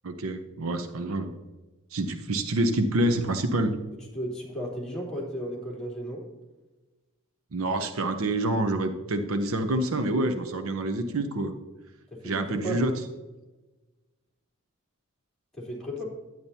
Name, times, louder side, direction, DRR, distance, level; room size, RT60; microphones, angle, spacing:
voice 1, 0.0-1.3 1.9-3.8 7.5-11.5 12.2-12.9, right 1 dB, 70° right, 8 dB, 0.7 m, -27 dB
voice 2, 4.1-6.2 12.1-12.8 15.6-16.0, equal, 5° left, -5 dB, 3.2 m, -34 dB
10.5 x 9.3 x 2.8 m, 1.2 s
head